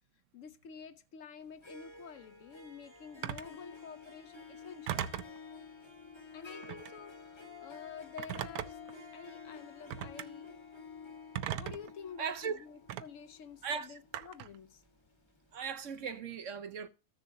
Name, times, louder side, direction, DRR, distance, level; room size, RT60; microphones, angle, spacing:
voice 1, 0.3-5.1 6.3-8.8 9.1-10.5 11.6-14.8, left 6 dB, 65° left, 0.9 m, -49 dB
Harp, 1.4-15.4, left 5 dB, 20° left, 0.9 m, -51 dB
Telephone, 3.2-3.5 4.9-5.4 6.6-7.0 8.2-8.9 9.9-10.3 11.3-11.9 12.9-13.0 14.1-14.5, right 11 dB, 85° right, 1.1 m, -38 dB
voice 2, 12.2-12.6 13.6-14.0 15.5-16.9, right 6 dB, 65° right, 1.0 m, -38 dB
14.5 x 6.8 x 2.6 m
omnidirectional pair, 1.5 m